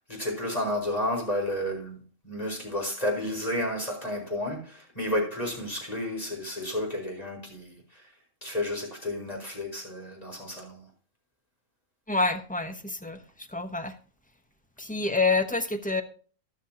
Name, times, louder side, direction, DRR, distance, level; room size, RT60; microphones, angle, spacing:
voice 1, 0.1-2.0 2.2-8.1 8.4-10.9, left 1 dB, 30° left, 0 dB, 5.1 m, -31 dB
voice 2, 12.1-13.9 14.8-16.0, left 3 dB, 5° left, 7 dB, 0.9 m, -28 dB
13.5 x 11.5 x 2.9 m, 0.41 s
omnidirectional pair, 1.4 m